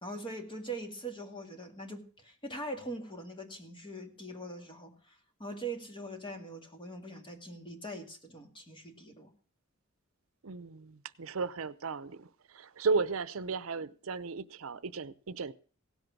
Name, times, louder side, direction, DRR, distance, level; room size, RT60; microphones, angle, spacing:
voice 1, 0.0-9.3, right 1 dB, 25° left, 2.2 m, -42 dB
voice 2, 10.4-12.3 12.5-15.5, right 4 dB, 70° right, 0.6 m, -34 dB
17.0 x 8.1 x 6.0 m
head